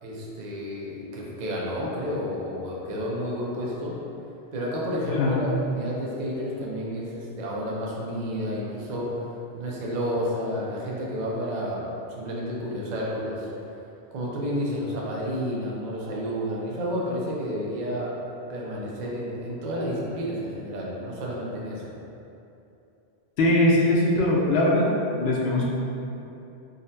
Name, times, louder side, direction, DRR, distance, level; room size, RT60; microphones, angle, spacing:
voice 1, 0.0-4.0 4.5-9.3 9.5-11.8 12.2-13.5 14.1-18.1 18.5-21.9, equal, 55° right, -4 dB, 0.5 m, -30 dB
voice 2, 23.4-24.9 25.2-25.7, left 1 dB, 80° left, -3 dB, 0.8 m, -21 dB
3.9 x 2.1 x 2.6 m, 2.8 s
omnidirectional pair, 1.1 m